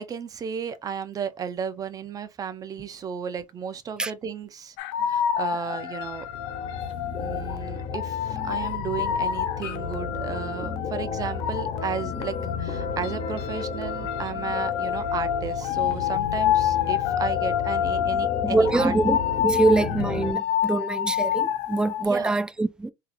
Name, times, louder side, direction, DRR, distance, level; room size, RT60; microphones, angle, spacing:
voice 1, 0.0-4.7 5.1-6.3 7.2-18.9 22.0-22.4, right 7 dB, 35° right, 0.7 m, -34 dB
sound 1, 4.8-22.0, left 10 dB, 80° left, 0.7 m, -28 dB
sound 2, 5.7-20.3, left 5 dB, 55° left, 1.3 m, -33 dB
voice 2, 18.4-22.9, right 2 dB, 10° right, 0.4 m, -24 dB
3.7 x 2.9 x 2.6 m
supercardioid pair, 110°, 11 cm